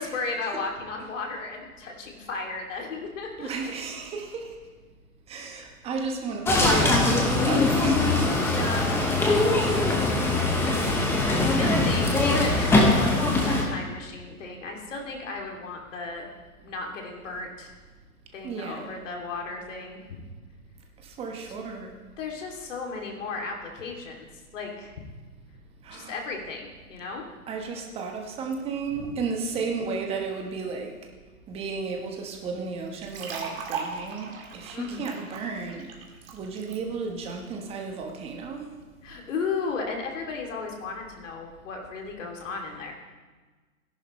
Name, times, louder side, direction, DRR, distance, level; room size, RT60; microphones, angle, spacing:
voice 1, 0.0-3.7 8.5-10.4 11.2-13.2 13.4-16.3 16.6-17.7 18.3-20.2 21.3-21.4 22.2-24.3 24.5-25.0 25.9-27.2 28.9-29.1 29.5-29.6 34.7-35.2 39.0-42.9, left 4 dB, 55° left, 1 dB, 2.8 m, -35 dB
voice 2, 3.4-4.5 5.3-8.4 18.4-18.9 21.0-21.9 25.8-26.2 27.5-30.9 31.5-35.9 36.3-38.6, right 4 dB, 15° right, 2 dB, 1.2 m, -33 dB
sound 1, 6.4-13.6, left 2 dB, 5° left, 0.9 m, -22 dB
sound 2, 32.9-36.8, right 5 dB, 40° right, 2.0 m, -38 dB
17.0 x 11.0 x 3.2 m, 1.3 s
hypercardioid pair, 140°, 45 cm